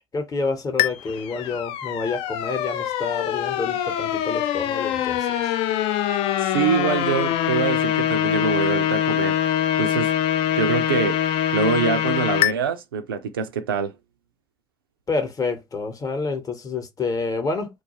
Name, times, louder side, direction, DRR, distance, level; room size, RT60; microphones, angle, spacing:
voice 1, 0.1-5.2 15.1-17.7, left 4 dB, 30° left, 0.8 m, -28 dB
sound 1, 0.8-12.5, left 11 dB, 55° left, 0.3 m, -24 dB
voice 2, 6.4-9.4 9.8-10.1 10.5-11.2 11.5-13.9, right 6 dB, 85° right, 0.4 m, -24 dB
2.3 x 2.3 x 2.8 m
hypercardioid pair, 65°, 12 cm